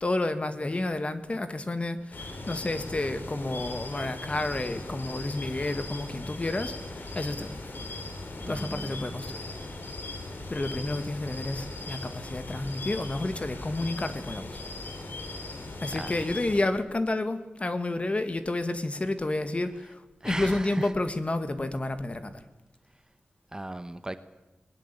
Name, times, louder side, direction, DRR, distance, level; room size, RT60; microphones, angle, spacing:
voice 1, 0.0-7.8 8.5-9.5 10.5-14.6 15.8-22.4, left 2 dB, 35° left, 10 dB, 1.9 m, -30 dB
sound 1, 2.1-16.6, left 2 dB, 65° left, 4.1 m, -39 dB
voice 2, 8.4-9.1 16.0-16.1 20.2-20.9 23.5-24.2, right 1 dB, 20° right, 11 dB, 1.2 m, -36 dB
20.5 x 20.5 x 8.6 m, 1.1 s
wide cardioid pair, 95°, 4 cm